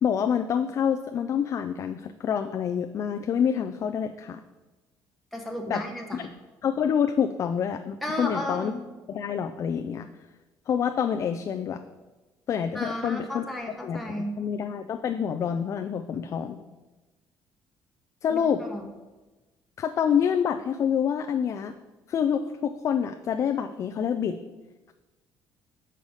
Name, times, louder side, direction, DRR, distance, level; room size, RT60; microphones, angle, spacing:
voice 1, 0.0-4.4 5.7-5.8 6.1-6.2 6.6-8.7 9.1-10.1 10.7-11.8 12.5-13.4 13.8-16.6 18.2-18.6 19.8-21.7 22.1-24.4, left 8 dB, 40° left, 7 dB, 0.4 m, -27 dB
voice 2, 5.3-6.2 8.0-8.8 12.7-14.4 18.3-18.8, left 1 dB, ahead, -1 dB, 1.1 m, -33 dB
6.5 x 5.5 x 6.3 m, 1.2 s
cardioid pair, 140°, 8 cm